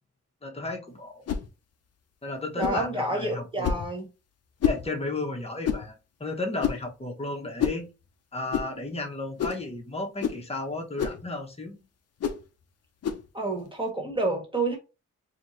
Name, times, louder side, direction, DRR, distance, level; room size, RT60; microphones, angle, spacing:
voice 1, 0.4-1.2 2.2-3.7 4.6-5.9 6.2-7.9 8.3-11.8, left 2 dB, 20° left, 1.0 m, -33 dB
sound 1, 1.3-1.5 2.6-2.8 3.6-3.9 4.6-4.8 5.6-5.9 6.6-6.9 7.6-7.8 8.5-8.7 9.4-9.6 10.2-10.4 11.0-11.2 12.2-12.4 13.0-13.2, left 8 dB, 55° left, 0.6 m, -28 dB
voice 2, 2.6-4.1 13.3-14.8, right 2 dB, 15° right, 1.5 m, -29 dB
4.0 x 2.8 x 3.1 m
wide cardioid pair, 125°, 31 cm